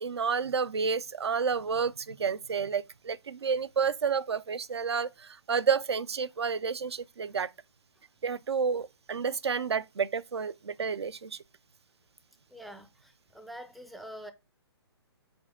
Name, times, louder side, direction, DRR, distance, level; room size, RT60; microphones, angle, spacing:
voice 1, 0.0-7.5 8.2-11.4, right 6 dB, 75° right, 0.4 m, -30 dB
voice 2, 12.5-14.3, equal, ahead, 0.4 m, -46 dB
5.2 x 4.2 x 4.9 m
figure-of-eight pair, 130°, 14 cm